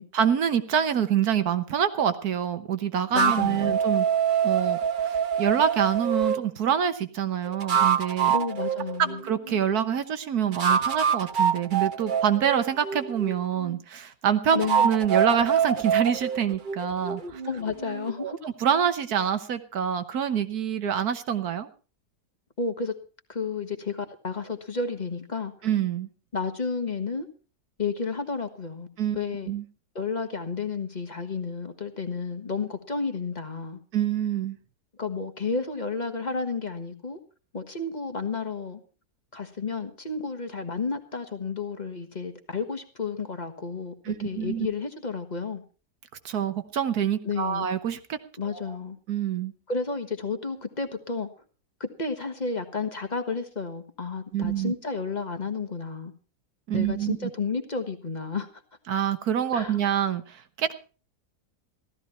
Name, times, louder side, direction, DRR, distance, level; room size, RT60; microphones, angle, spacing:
voice 1, 0.1-4.1 4.4-8.3 9.2-17.4 18.2-21.7 25.6-26.1 29.0-29.2 29.5-29.6 33.9-34.6 44.0-44.7 46.2-48.2 48.5-48.8 49.1-49.5 54.3-54.7 56.7-57.2 58.9-60.7, right 8 dB, 65° right, 11 dB, 1.5 m, -26 dB
voice 2, 3.1-3.8 8.3-9.2 14.5-14.9 17.4-18.4 22.6-23.0 23.3-25.5 26.3-27.3 27.8-28.9 29.1-29.5 29.9-33.8 35.0-37.2 37.5-38.8 39.3-43.9 44.2-45.6 47.2-47.7 48.4-49.0 49.7-51.3 51.8-56.1 56.7-58.5 59.5-59.8, left 4 dB, 25° left, 7 dB, 1.5 m, -31 dB
sound 1, 3.2-6.4 7.5-9.6 10.5-13.8 14.5-18.1, right 7 dB, 35° right, 0.9 m, -25 dB
15.5 x 13.5 x 4.3 m, 0.36 s
omnidirectional pair, 1.8 m